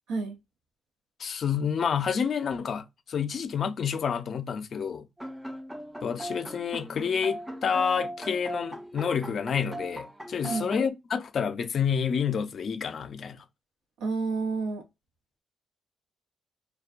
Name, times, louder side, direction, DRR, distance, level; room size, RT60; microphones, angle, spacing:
voice 1, 1.2-5.1 6.0-13.4, left 7 dB, 55° left, 0.4 m, -29 dB
sound 1, 5.2-10.9, right 1 dB, 5° right, 0.4 m, -39 dB
voice 2, 10.4-10.8 14.0-14.8, right 4 dB, 90° right, 0.8 m, -30 dB
2.6 x 2.2 x 2.4 m
cardioid pair, 90°, 0 cm